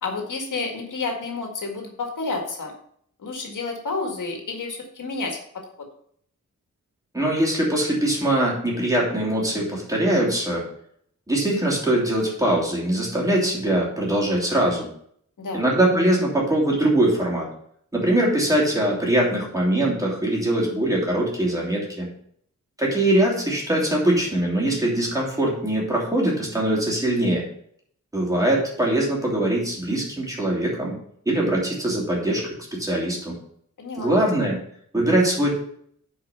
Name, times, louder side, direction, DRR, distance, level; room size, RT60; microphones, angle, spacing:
voice 1, 0.0-2.7 3.2-5.6 15.4-15.7 33.8-34.1, left 3 dB, 90° left, 2 dB, 1.9 m, -30 dB
voice 2, 7.1-10.6 11.3-14.9 15.5-17.5 17.9-22.1 22.8-27.4 28.1-30.9 31.2-33.3 34.0-34.6 34.9-35.6, right 1 dB, 10° right, -4 dB, 3.1 m, -22 dB
8.9 x 4.9 x 5.7 m, 0.64 s
wide cardioid pair, 155°, 30 cm